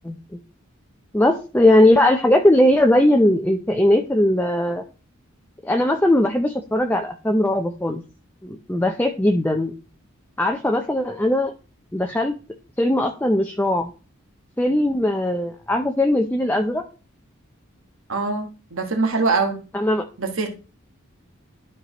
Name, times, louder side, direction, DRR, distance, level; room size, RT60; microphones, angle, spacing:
voice 1, 1.1-4.8 5.6-8.0 8.4-9.7 10.4-11.5 11.9-12.3 12.8-13.9 14.6-16.8 19.7-20.0, left 1 dB, 10° left, 4 dB, 0.5 m, -19 dB
voice 2, 18.1-19.6 20.2-20.5, right 3 dB, 80° right, 3 dB, 1.4 m, -23 dB
12.5 x 4.7 x 3.0 m, 0.35 s
head